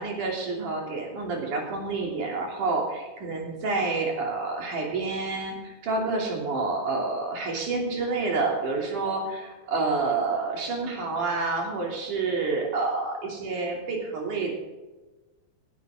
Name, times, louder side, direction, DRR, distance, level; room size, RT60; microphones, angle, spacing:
voice 1, 0.0-14.5, right 3 dB, 80° right, 0 dB, 4.7 m, -28 dB
20.5 x 12.0 x 3.8 m, 1.2 s
omnidirectional pair, 3.5 m